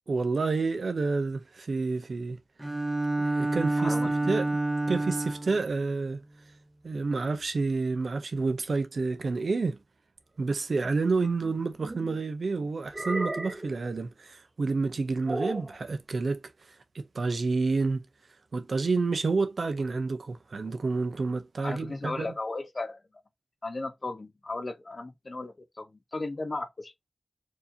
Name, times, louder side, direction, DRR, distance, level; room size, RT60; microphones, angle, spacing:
voice 1, 0.1-2.4 3.2-4.5 4.9-6.2 6.8-9.8 10.4-16.4 16.7-18.0 18.5-22.3, right 3 dB, 75° right, 0.6 m, -29 dB
Bowed string instrument, 2.6-5.6, right 2 dB, 20° right, 0.7 m, -28 dB
voice 2, 3.8-4.3 21.6-23.0 23.6-25.9 26.1-26.9, left 2 dB, 50° left, 0.7 m, -35 dB
sound 1, 11.4-12.2 12.9-13.8 15.3-15.8, right 1 dB, 35° right, 1.9 m, -34 dB
4.6 x 2.8 x 2.6 m
wide cardioid pair, 80°, 0 cm